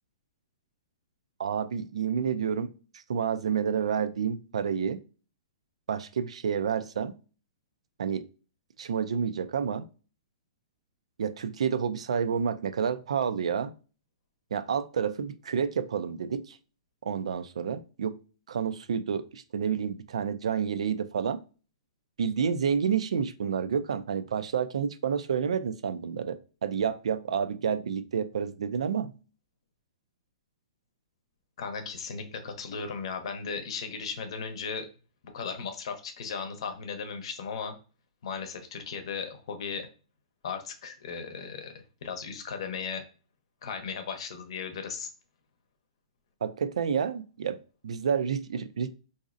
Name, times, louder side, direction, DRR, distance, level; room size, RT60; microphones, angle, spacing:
voice 1, 1.4-2.7 3.1-5.0 5.9-7.2 8.0-8.2 8.8-9.8 11.2-13.7 14.5-16.6 17.0-18.2 18.5-21.4 22.2-29.1 46.4-47.6 47.8-48.9, right 7 dB, 85° right, 0.3 m, -29 dB
voice 2, 31.6-34.9 35.3-37.7 38.2-39.9 40.4-41.7 42.0-43.0 43.6-45.1, left 5 dB, 60° left, 0.7 m, -36 dB
3.9 x 2.6 x 2.5 m
hypercardioid pair, 155°, 3 cm